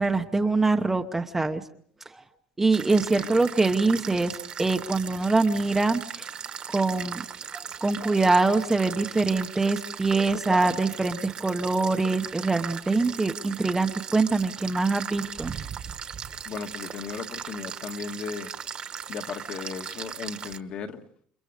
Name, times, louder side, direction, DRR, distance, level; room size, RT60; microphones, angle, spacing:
voice 1, 0.0-1.6 2.1-2.2 2.6-6.3 6.7-7.3 7.5-15.5, right 3 dB, 10° right, 1.0 m, -24 dB
sound 1, 2.7-20.6, right 7 dB, 30° right, 1.4 m, -38 dB
voice 2, 16.4-18.5 19.1-21.0, left 6 dB, 40° left, 1.8 m, -36 dB
29.5 x 27.5 x 5.1 m
cardioid pair, 160°, 3 cm